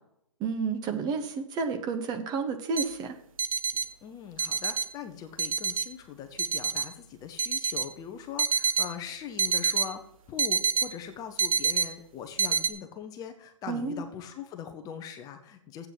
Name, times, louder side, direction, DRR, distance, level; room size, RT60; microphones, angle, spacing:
voice 1, 0.4-3.1 13.7-14.0, right 5 dB, 25° right, 7 dB, 1.1 m, -31 dB
sound 1, 2.8-2.9 3.4-3.8 4.4-4.8 5.4-5.8 6.4-6.8 7.4-7.8 8.4-8.9 9.4-9.9 10.4-10.9 11.4-11.9 12.4-12.7, right 6 dB, 80° right, 0.7 m, -26 dB
voice 2, 4.0-10.0 10.3-15.9, left 8 dB, 20° left, 7 dB, 0.8 m, -41 dB
8.1 x 6.9 x 7.3 m, 0.75 s
hypercardioid pair, 135°, 17 cm